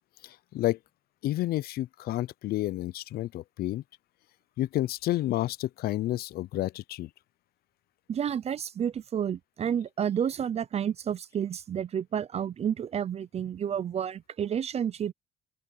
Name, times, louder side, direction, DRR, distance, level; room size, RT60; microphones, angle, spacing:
voice 1, 0.2-0.8 1.2-3.8 4.6-7.1, left 15 dB, 65° left, 0.5 m, -30 dB
voice 2, 8.1-15.1, right 8 dB, 40° right, 0.6 m, -30 dB
open air
cardioid pair, 110°, 17 cm